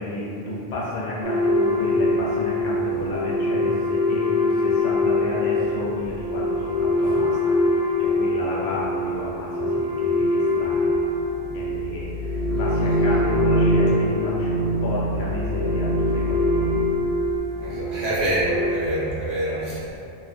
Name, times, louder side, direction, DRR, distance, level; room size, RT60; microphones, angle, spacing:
voice 1, 0.0-11.1 11.5-16.7 19.5-19.7, left 1 dB, 80° left, -5 dB, 0.9 m, -32 dB
sound 1, 1.2-18.7, left 1 dB, 85° right, 0.8 m, -23 dB
voice 2, 17.6-20.0, right 1 dB, 55° right, -9 dB, 1.0 m, -26 dB
2.5 x 2.2 x 2.4 m, 2.5 s
omnidirectional pair, 1.1 m